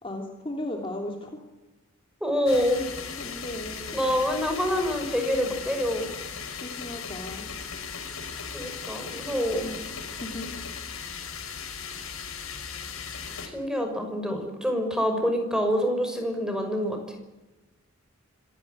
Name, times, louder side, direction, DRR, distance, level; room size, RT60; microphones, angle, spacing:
voice 1, 0.0-1.3 3.2-4.2 6.6-7.5 9.6-9.9 10.2-10.5, left 1 dB, 25° left, 2 dB, 3.2 m, -36 dB
voice 2, 2.2-2.8 3.9-6.1 8.5-9.6 13.5-17.0, equal, 5° right, 5 dB, 6.0 m, -26 dB
sound 1, 2.5-13.5, left 6 dB, 75° left, 5.8 m, -37 dB
26.0 x 17.5 x 9.7 m, 1.0 s
head